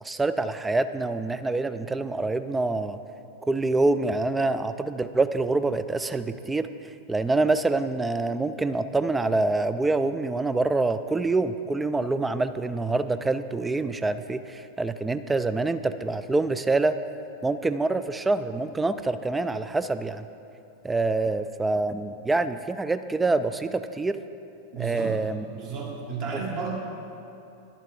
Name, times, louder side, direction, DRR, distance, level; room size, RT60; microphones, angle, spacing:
voice 1, 0.0-3.0 3.5-6.7 7.1-16.9 17.4-20.3 20.8-24.2 24.8-25.5, right 3 dB, 10° right, 12 dB, 0.3 m, -26 dB
voice 2, 24.7-25.1 25.5-26.8, right 4 dB, 45° right, -2 dB, 1.8 m, -32 dB
11.0 x 7.4 x 3.6 m, 2.8 s
figure-of-eight pair, 90°, 0 cm